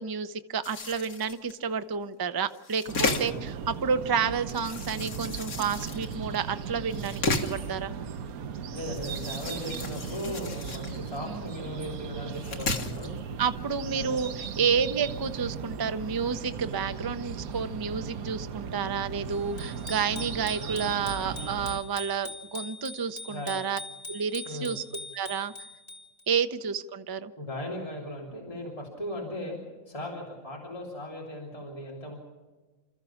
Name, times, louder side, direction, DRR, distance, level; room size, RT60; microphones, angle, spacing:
voice 1, 0.0-7.9 11.3-11.5 13.4-23.8 24.1-24.8 25.1-25.5 26.3-27.3, right 6 dB, 30° right, 10 dB, 0.4 m, -30 dB
sound 1, 0.6-1.5 2.5-3.5 4.5-6.4 6.9-7.7 8.8-11.4 11.8-11.9 12.3-13.1, left 3 dB, 80° left, 2.2 m, -34 dB
sound 2, 2.9-21.8, right 6 dB, 80° right, 1.3 m, -37 dB
voice 2, 3.0-3.4 8.7-13.1 13.9-14.2 23.3-23.6 24.4-24.8 27.4-29.6 29.9-32.1, left 1 dB, 25° left, -3 dB, 3.2 m, -37 dB
Bicycle bell, 19.6-26.2, left 2 dB, 40° left, 2.8 m, -42 dB
28.0 x 14.0 x 7.1 m, 1.3 s
omnidirectional pair, 1.5 m